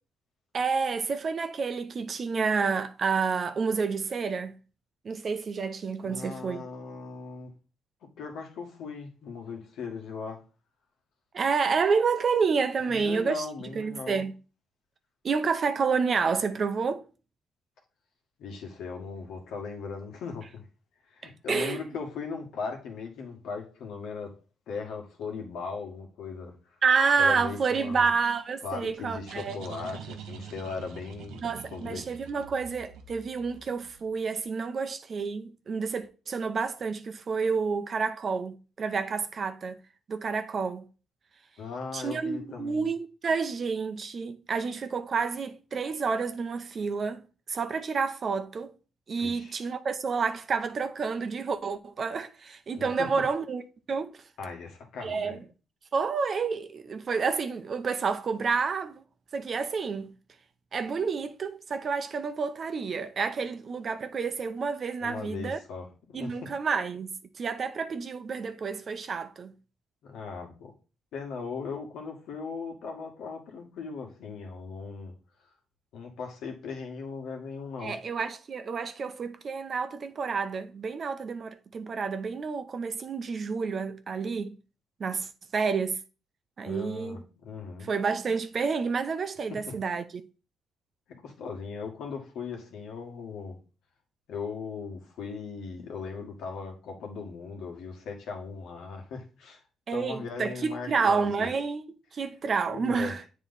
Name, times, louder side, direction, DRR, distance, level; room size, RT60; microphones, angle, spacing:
voice 1, 0.5-4.5 5.0-6.6 11.3-13.5 13.7-14.3 15.2-17.0 21.2-21.8 26.8-29.6 31.4-39.8 40.1-40.9 41.9-47.2 47.5-48.7 49.1-53.6 53.9-54.1 55.0-55.4 55.9-59.0 59.3-60.1 60.7-65.6 66.1-69.5 77.8-84.6 85.0-86.0 86.6-87.2 87.9-90.0 99.9-101.8 102.1-103.2, right 5 dB, 45° right, 0.7 m, -29 dB
voice 2, 6.0-7.5 8.0-10.4 12.8-14.2 18.4-20.6 21.1-24.3 24.7-26.5 27.2-28.1 28.6-32.0 41.6-42.9 49.2-49.6 52.7-53.3 54.4-55.4 65.0-66.5 70.0-70.7 71.1-75.1 75.9-78.0 86.6-87.9 89.5-89.7 91.1-93.6 94.3-99.6 99.9-101.5 102.7-103.2, left 5 dB, 80° left, 1.6 m, -38 dB
sound 1, 28.9-34.3, right 7 dB, 90° right, 0.7 m, -46 dB
8.2 x 3.2 x 4.0 m
cardioid pair, 90°, 0 cm